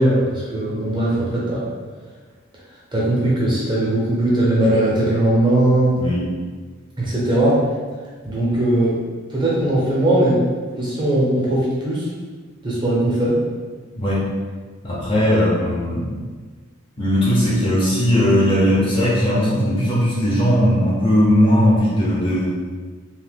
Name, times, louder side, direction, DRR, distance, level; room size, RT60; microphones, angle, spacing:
voice 1, 0.0-1.7 2.9-6.0 7.0-7.6 8.2-9.0 9.3-10.4 10.8-12.1 12.6-13.4, right 1 dB, 20° right, -6 dB, 0.6 m, -19 dB
voice 2, 5.9-6.3 14.0-14.3 14.8-16.1 17.0-22.5, equal, 25° left, -6 dB, 0.5 m, -18 dB
2.9 x 2.1 x 3.4 m, 1.5 s
head